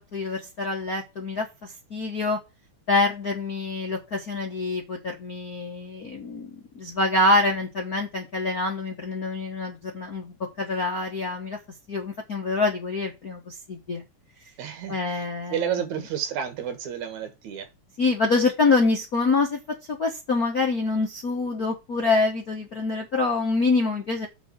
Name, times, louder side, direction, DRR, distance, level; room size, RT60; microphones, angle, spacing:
voice 1, 0.1-2.4 2.9-6.5 6.7-11.6 11.9-14.0 14.9-15.7 18.0-24.3, left 3 dB, 45° left, 1.2 m, -26 dB
voice 2, 14.6-15.2 15.5-17.7, right 9 dB, 70° right, 2.7 m, -31 dB
8.0 x 3.9 x 6.6 m
omnidirectional pair, 3.6 m